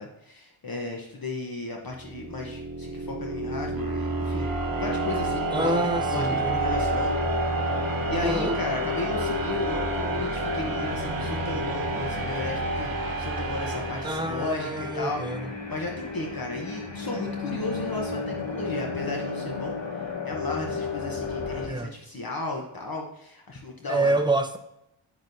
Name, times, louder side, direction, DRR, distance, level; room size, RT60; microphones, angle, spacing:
voice 1, 0.0-7.2 7.6-15.2 15.7-24.2, left 2 dB, 45° left, 1 dB, 1.0 m, -34 dB
sound 1, 1.9-14.8, right 2 dB, 45° right, 1.1 m, -30 dB
voice 2, 5.5-6.6 8.2-8.6 14.0-15.5 21.7-21.9 23.9-24.6, right 2 dB, 10° right, 7 dB, 0.6 m, -27 dB
sound 2, 6.6-21.7, left 4 dB, 65° left, 1.7 m, -33 dB
7.2 x 6.1 x 2.6 m, 0.82 s
cardioid pair, 60°, 49 cm